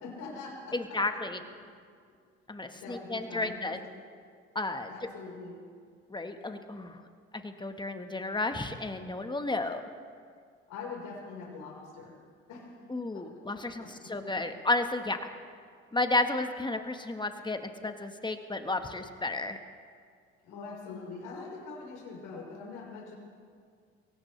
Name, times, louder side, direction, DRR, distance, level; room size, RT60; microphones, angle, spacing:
voice 1, 0.0-1.2 2.8-3.8 4.9-5.6 10.7-12.2 12.5-12.7 13.1-14.4 20.4-23.1, left 4 dB, 70° left, -1 dB, 4.5 m, -43 dB
voice 2, 0.7-1.4 2.5-3.8 4.5-4.9 6.1-7.0 7.3-9.8 12.9-15.2 15.9-19.6, left 2 dB, 15° left, 7 dB, 1.4 m, -32 dB
22.5 x 17.0 x 3.3 m, 2.1 s
hypercardioid pair, 70°, 32 cm